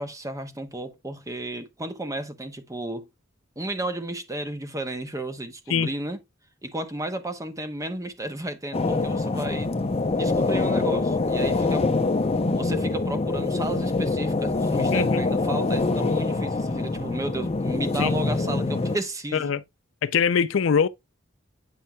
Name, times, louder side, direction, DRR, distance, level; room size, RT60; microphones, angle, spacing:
voice 1, 0.0-3.1 3.6-6.2 6.6-9.7 10.1-11.9 12.6-19.5, right 1 dB, 15° right, 0.9 m, -33 dB
sound 1, 8.7-19.0, left 3 dB, 30° left, 0.6 m, -25 dB
voice 2, 14.9-15.2 18.0-18.1 19.3-19.6 20.0-20.9, left 6 dB, 70° left, 0.4 m, -22 dB
9.0 x 5.4 x 2.2 m
head